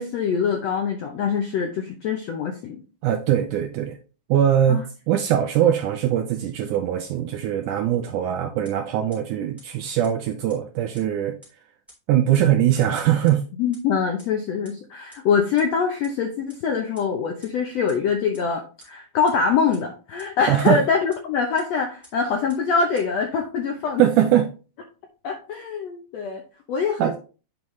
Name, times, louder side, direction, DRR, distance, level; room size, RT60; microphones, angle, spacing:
voice 1, 0.0-2.8 4.7-4.8 13.6-24.0 25.2-26.4 26.7-27.2, left 6 dB, 75° left, 1.5 m, -24 dB
voice 2, 3.0-4.0 4.3-11.4 12.1-13.4 20.5-20.8 24.0-24.5 27.0-27.1, right 10 dB, 80° right, 1.8 m, -21 dB
sound 1, 8.6-8.7 9.1-9.2 9.6-9.7 10.0-10.1 10.5-10.6 10.9-11.0 11.4-11.5 11.9-12.0 12.3-12.4 12.8-12.9 13.3-13.4 13.7-13.8 14.2-14.3 14.6-14.7 15.1-15.2 15.6-15.7 16.0-16.1 16.5-16.6 16.9-17.0 17.4-17.5 17.9-18.0 18.3-18.4 18.8-18.9 19.3-19.4 19.7-19.8 20.2-20.3 20.6-20.7 21.1-21.2 21.6-21.7 22.0-22.1 22.5-22.6 22.9-23.0, equal, ahead, 3.1 m, -48 dB
8.3 x 5.4 x 3.1 m
omnidirectional pair, 4.1 m